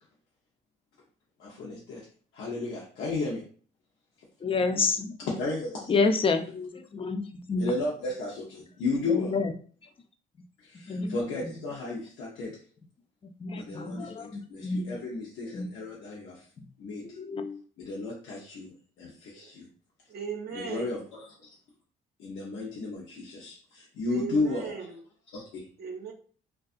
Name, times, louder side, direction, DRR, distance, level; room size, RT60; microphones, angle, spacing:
voice 1, 1.4-2.1 2.3-3.4 5.4-5.9 7.6-9.4 10.6-12.6 13.6-16.4 16.8-17.0 17.8-19.7 20.5-21.3 22.2-24.7 25.3-25.4, left 3 dB, 85° left, 0.7 m, -33 dB
voice 2, 4.4-5.2 5.9-7.7 9.1-9.5 10.9-11.5 13.2-15.0 15.5-15.7 16.6-16.7 17.0-17.6, left 4 dB, 30° left, 0.3 m, -29 dB
voice 3, 20.1-21.0 24.1-25.0 25.8-26.1, right 6 dB, 55° right, 0.5 m, -37 dB
2.6 x 2.3 x 2.4 m
cardioid pair, 90°, 20 cm